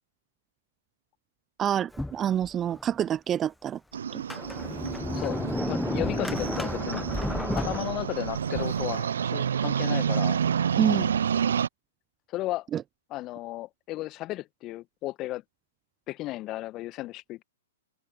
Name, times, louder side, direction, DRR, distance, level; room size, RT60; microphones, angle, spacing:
voice 1, 1.6-3.8 4.1-4.2 10.8-11.1 12.7-12.8, right 10 dB, 20° right, 0.4 m, -27 dB
Sliding door, 1.9-2.9 3.4-3.5 4.1-8.9, left 1 dB, 5° left, 1.2 m, -32 dB
sound 1, 3.9-11.7, right 8 dB, 65° right, 0.6 m, -29 dB
voice 2, 5.0-7.1 7.6-10.5 12.3-12.7 13.1-15.4 16.1-17.4, left 17 dB, 30° left, 1.7 m, -34 dB
open air
figure-of-eight pair, 110°, 0 cm